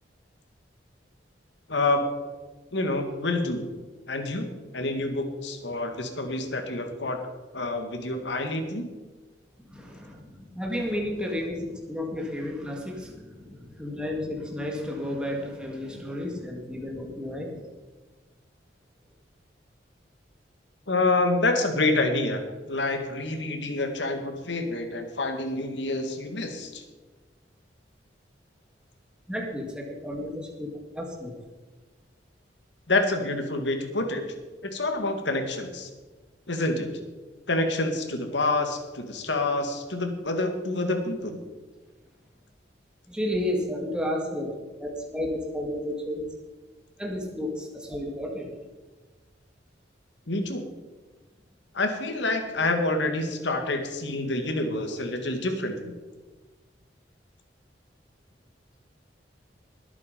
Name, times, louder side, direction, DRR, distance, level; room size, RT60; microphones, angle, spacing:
voice 1, 1.7-2.1 2.7-3.6 4.1-4.5 4.7-7.2 7.5-8.9 20.9-22.4 22.7-26.8 32.9-34.2 34.6-35.9 36.5-36.9 37.5-41.4 50.3-50.6 51.7-55.9, left 2 dB, 75° left, 5 dB, 2.1 m, -27 dB
voice 2, 9.6-17.7 29.3-31.3 43.1-44.5 44.8-46.2 47.0-48.5, left 1 dB, 5° right, 0 dB, 2.1 m, -32 dB
20.5 x 8.5 x 5.2 m, 1.3 s
head